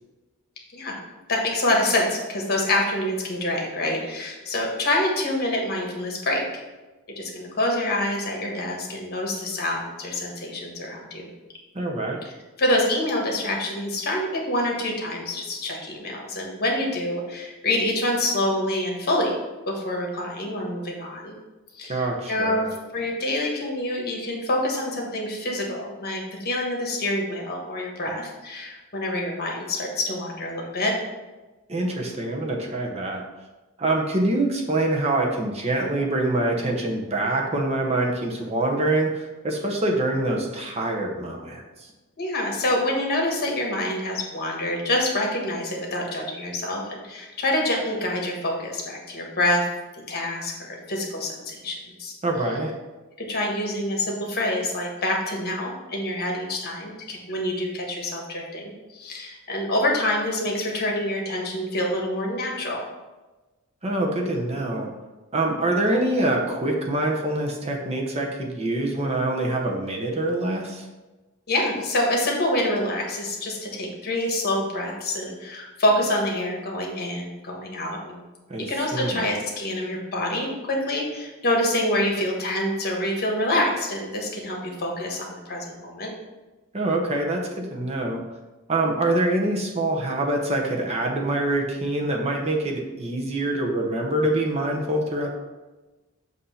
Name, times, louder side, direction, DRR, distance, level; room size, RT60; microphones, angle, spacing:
voice 1, 1.3-6.6 7.2-11.3 12.2-12.3 12.6-19.4 19.7-21.4 21.7-22.6 22.9-30.9 42.2-49.7 50.1-52.1 53.2-62.8 71.5-78.2 78.7-86.1, left 1 dB, 45° left, 0 dB, 1.4 m, -26 dB
voice 2, 11.7-12.2 21.9-22.7 31.7-33.2 33.8-41.9 52.2-52.7 63.8-64.9 65.3-70.9 78.5-79.2 86.7-88.2 88.7-95.3, right 2 dB, 30° right, 0 dB, 0.8 m, -25 dB
7.8 x 2.8 x 5.6 m, 1.2 s
head